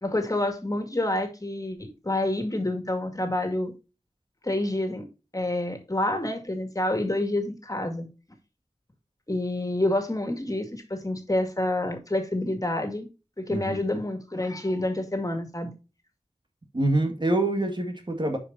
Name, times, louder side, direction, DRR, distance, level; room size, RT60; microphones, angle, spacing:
voice 1, 0.0-3.7 4.4-5.0 5.3-8.1 9.3-13.1 13.4-15.7, left 1 dB, 30° left, 2.1 m, -28 dB
voice 2, 13.5-13.8 16.7-18.4, right 2 dB, 45° right, 1.9 m, -25 dB
10.5 x 5.0 x 2.7 m
wide cardioid pair, 55°, 11 cm